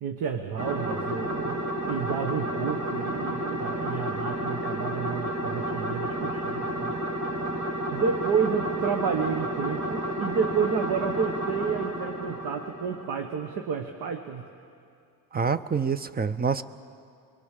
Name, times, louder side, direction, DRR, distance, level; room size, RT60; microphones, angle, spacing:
voice 1, 0.0-7.0 7.9-14.5, right 6 dB, 65° right, 5 dB, 1.4 m, -30 dB
sound 1, 0.6-13.4, right 1 dB, 45° right, 2.5 m, -31 dB
voice 2, 15.3-16.6, right 6 dB, 25° right, 14 dB, 0.6 m, -26 dB
23.0 x 22.5 x 6.7 m, 2.4 s
cardioid pair, 105°, 39 cm